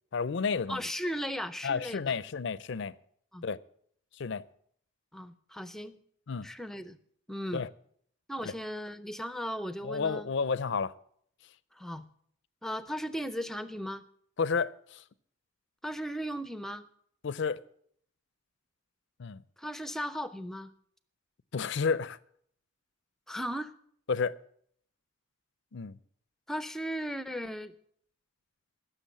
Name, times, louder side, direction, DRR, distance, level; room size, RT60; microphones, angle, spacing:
voice 1, 0.1-0.8 1.6-2.9 3.4-3.6 4.1-4.4 6.3-6.5 7.5-7.7 8.4-8.5 9.8-10.9 14.4-15.0 17.2-17.6 19.2-19.4 21.5-22.2 24.1-24.4 25.7-26.0, left 5 dB, 55° left, 0.4 m, -31 dB
voice 2, 0.7-2.0 3.3-3.4 5.1-6.0 6.4-7.0 7.3-7.6 8.3-10.3 11.8-12.0 12.6-14.1 15.8-16.9 19.6-20.7 23.3-23.7 26.5-27.7, equal, ahead, 0.5 m, -36 dB
15.5 x 6.9 x 7.3 m
head